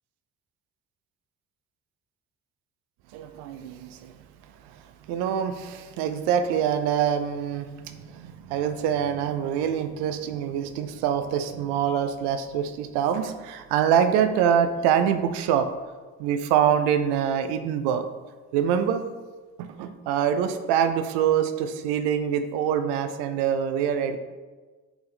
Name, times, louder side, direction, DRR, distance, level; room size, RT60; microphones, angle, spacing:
voice 1, 3.1-4.1 4.7-4.8 5.1-15.7 16.2-18.1 18.5-19.0 19.6-24.2, right 8 dB, 65° right, 9 dB, 0.5 m, -25 dB
3.6 x 3.5 x 4.0 m, 1.3 s
hypercardioid pair, 50°, 44 cm